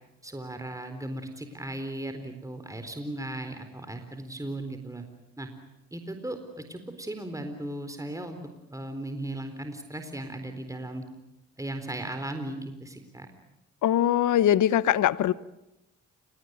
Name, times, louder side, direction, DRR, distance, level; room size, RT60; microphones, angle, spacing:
voice 1, 0.2-5.0 5.4-5.5 5.9-8.4 8.7-11.0 11.6-13.3, right 1 dB, 10° right, 7 dB, 4.2 m, -37 dB
voice 2, 13.8-15.3, left 11 dB, 75° left, 18 dB, 1.0 m, -22 dB
30.0 x 18.5 x 9.5 m, 0.92 s
supercardioid pair, 55°, 31 cm